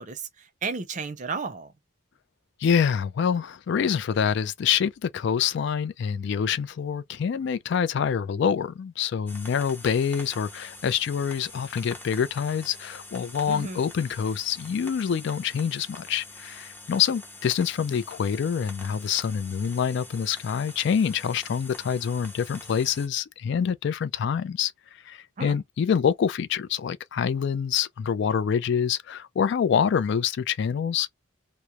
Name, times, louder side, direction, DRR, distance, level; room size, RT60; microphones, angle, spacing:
voice 1, 0.0-1.7 13.5-13.8 25.4-25.5, right 4 dB, 40° right, 0.5 m, -33 dB
voice 2, 2.6-24.7 25.1-31.1, left 7 dB, 60° left, 0.3 m, -26 dB
sound 1, 9.3-23.1, left 2 dB, 10° left, 0.6 m, -45 dB
2.9 x 2.0 x 2.2 m
head